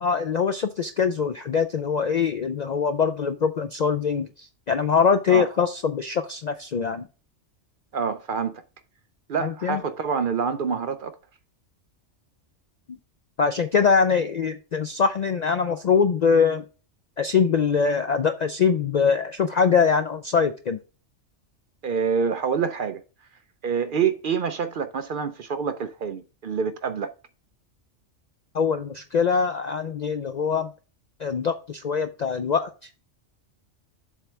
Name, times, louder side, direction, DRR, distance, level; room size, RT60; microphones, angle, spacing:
voice 1, 0.0-7.1 9.4-9.8 13.4-16.6 17.2-20.8 28.5-30.7 31.2-32.7, left 6 dB, 60° left, 0.4 m, -23 dB
voice 2, 7.9-8.6 9.3-11.2 21.8-23.0 23.6-27.1, right 6 dB, 60° right, 0.6 m, -26 dB
7.4 x 3.3 x 6.0 m
omnidirectional pair, 1.2 m